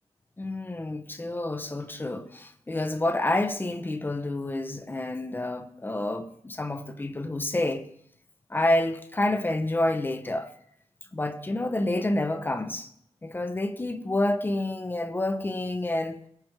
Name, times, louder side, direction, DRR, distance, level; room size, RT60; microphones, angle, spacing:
voice 1, 0.4-7.9 8.5-10.5 11.1-12.9 13.2-16.2, left 1 dB, 20° left, 0.9 m, -28 dB
22.5 x 9.3 x 3.4 m
wide cardioid pair, 175°, 11 cm